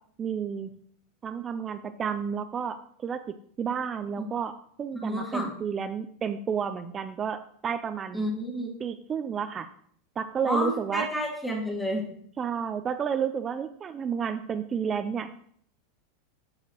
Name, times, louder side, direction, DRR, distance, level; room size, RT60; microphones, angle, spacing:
voice 1, 0.2-0.7 1.2-3.2 3.6-4.5 4.8-8.2 8.8-9.7 10.2-11.1 12.4-15.4, right 7 dB, 25° right, 9 dB, 0.4 m, -31 dB
voice 2, 5.0-5.5 8.1-8.7 10.4-12.1, equal, 5° left, -1 dB, 1.7 m, -30 dB
13.0 x 4.8 x 3.0 m, 0.63 s
supercardioid pair, 125°, 0 cm